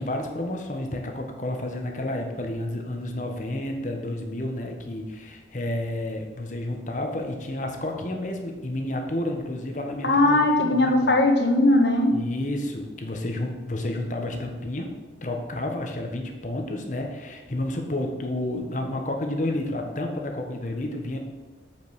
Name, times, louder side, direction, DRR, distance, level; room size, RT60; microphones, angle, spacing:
voice 1, 0.0-11.1 12.1-14.9 15.2-21.2, left 1 dB, 45° left, 3 dB, 1.2 m, -30 dB
voice 2, 10.0-12.1, left 2 dB, 70° left, 3 dB, 1.4 m, -19 dB
8.1 x 5.4 x 6.2 m, 1.3 s
head